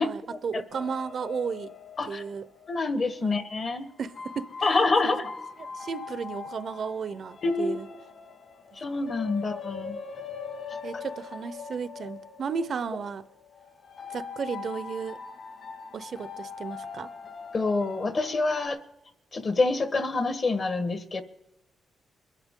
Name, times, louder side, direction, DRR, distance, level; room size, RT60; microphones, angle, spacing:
voice 1, 0.0-1.7 2.1-2.5 3.2-3.5 4.0-4.5 5.0-5.2 5.7-7.9 9.3-9.5 10.8-13.3 14.1-15.2 15.9-17.1, right 6 dB, 50° right, 0.7 m, -34 dB
sound 1, 0.7-3.2 4.0-18.7, left 5 dB, 60° left, 4.1 m, -42 dB
voice 2, 2.7-3.9 4.6-5.3 7.4-7.8 8.8-10.0 17.5-18.8 19.3-21.2, left 3 dB, 40° left, 1.4 m, -26 dB
22.5 x 11.5 x 3.8 m
cardioid pair, 100°, 0 cm